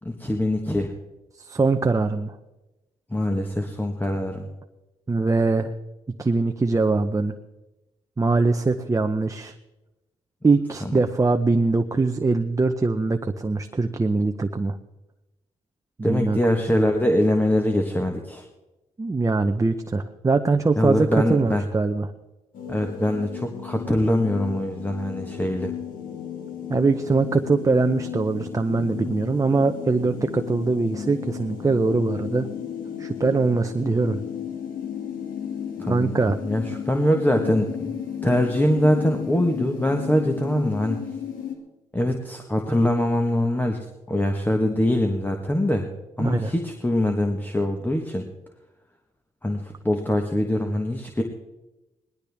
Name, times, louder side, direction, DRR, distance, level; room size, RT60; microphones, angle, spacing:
voice 1, 0.0-0.9 3.1-4.5 10.8-11.0 16.0-18.4 20.8-21.6 22.7-25.7 35.8-37.9 38.2-41.0 41.9-43.8 44.1-45.9 46.2-48.3 49.4-51.2, left 1 dB, 15° left, 3 dB, 1.4 m, -23 dB
voice 2, 1.4-2.3 5.1-5.7 6.2-7.3 8.2-9.5 10.4-14.8 16.0-16.4 19.0-22.1 26.7-32.5 33.0-34.2 35.9-36.4 46.2-46.5, right 3 dB, 25° right, 6 dB, 0.7 m, -22 dB
sound 1, 22.5-41.5, left 8 dB, 80° left, 2.2 m, -34 dB
19.0 x 11.5 x 3.5 m, 1.0 s
cardioid pair, 70°, 14 cm